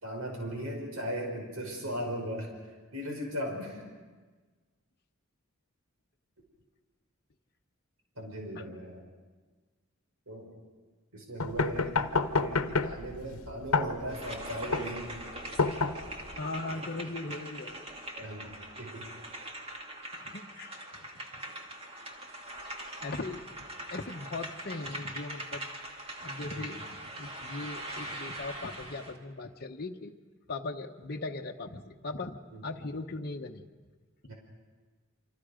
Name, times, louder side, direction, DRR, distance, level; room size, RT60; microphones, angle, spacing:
voice 1, 0.0-3.8 8.2-9.1 10.3-10.5 11.1-15.1 18.1-19.1 26.5-26.8 32.5-32.6 34.3-34.4, equal, 80° right, 1 dB, 5.4 m, -38 dB
sound 1, 11.4-16.4, left 4 dB, 90° left, 1.0 m, -30 dB
sound 2, 14.1-29.2, right 1 dB, 30° right, 2.5 m, -42 dB
voice 2, 16.3-17.8 20.1-20.9 23.0-23.4 23.9-25.6 26.2-26.8 27.2-30.1 30.5-33.6 34.2-34.3, left 3 dB, 50° left, 2 dB, 1.1 m, -39 dB
28.5 x 25.5 x 5.1 m, 1.4 s
head